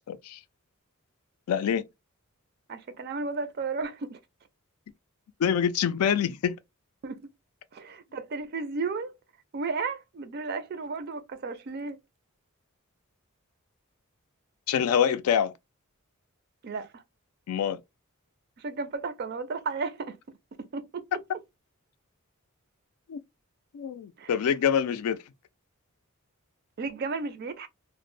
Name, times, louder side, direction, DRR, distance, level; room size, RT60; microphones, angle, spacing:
voice 1, 0.1-0.4 1.5-1.8 5.4-6.6 14.7-15.5 17.5-17.8 23.1-23.2 23.7-25.2, left 8 dB, 90° left, 0.3 m, -25 dB
voice 2, 2.7-4.2 7.0-7.3 7.7-9.1 9.5-12.0 16.6-17.0 18.6-21.0 24.2-24.3 26.8-27.7, right 4 dB, 45° right, 0.4 m, -34 dB
2.1 x 2.0 x 3.0 m
head